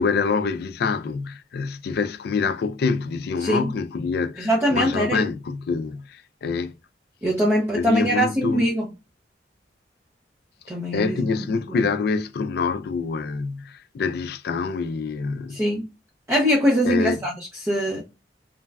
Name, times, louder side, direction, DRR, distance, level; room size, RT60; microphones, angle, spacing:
voice 1, 0.0-6.7 7.7-8.7 10.9-15.6 16.8-17.2, left 5 dB, 55° left, 0.3 m, -26 dB
voice 2, 3.4-3.7 4.4-5.2 7.2-8.9 10.7-11.2 11.7-11.8 15.5-15.9 16.3-18.0, equal, 15° right, 0.5 m, -22 dB
3.1 x 2.2 x 2.2 m
head